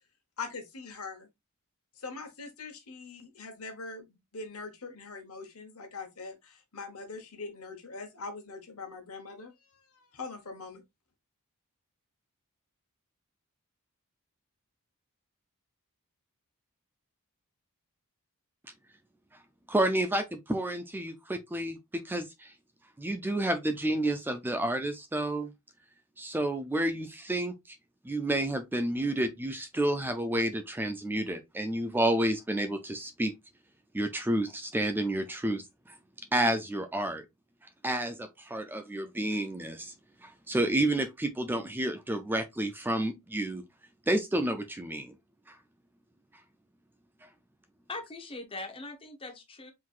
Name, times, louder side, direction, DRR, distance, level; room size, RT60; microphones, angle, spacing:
voice 1, 0.4-1.3 2.0-4.0 4.3-9.5 10.1-10.8, left 4 dB, 70° left, 1.1 m, -42 dB
voice 2, 19.7-22.5 23.0-25.5 26.2-27.8 28.0-33.3 33.9-35.6 36.3-37.2 37.8-39.9 40.2-43.6 44.1-45.1, right 1 dB, 10° right, 0.3 m, -30 dB
voice 3, 47.9-49.7, left 2 dB, 25° left, 0.9 m, -41 dB
4.5 x 3.8 x 2.4 m
head